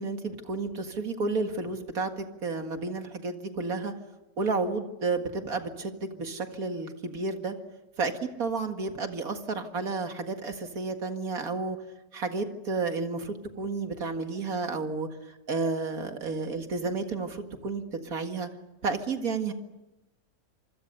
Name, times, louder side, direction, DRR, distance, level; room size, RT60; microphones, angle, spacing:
voice 1, 0.0-3.9 4.4-7.5 8.0-8.1 8.4-11.8 12.1-15.1 15.5-18.5 18.8-19.5, right 3 dB, 75° right, 6 dB, 2.4 m, -31 dB
27.0 x 25.0 x 6.8 m, 1.0 s
omnidirectional pair, 1.5 m